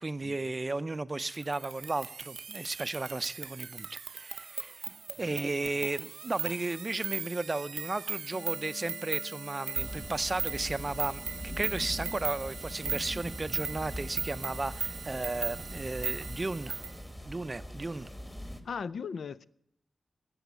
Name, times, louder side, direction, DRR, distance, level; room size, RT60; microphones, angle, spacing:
voice 1, 0.0-3.9 4.1-4.9 5.2-11.2 11.6-16.8 17.2-18.1, right 2 dB, 25° right, 0.5 m, -34 dB
sound 1, 1.3-17.0, right 6 dB, 80° right, 0.6 m, -38 dB
voice 2, 5.2-5.9 18.6-19.4, left 6 dB, 85° left, 0.4 m, -39 dB
sound 2, 8.3-13.1, left 4 dB, 60° left, 0.8 m, -52 dB
sound 3, 9.8-18.6, equal, 10° left, 1.2 m, -42 dB
14.0 x 7.7 x 9.4 m
wide cardioid pair, 150°, 0 cm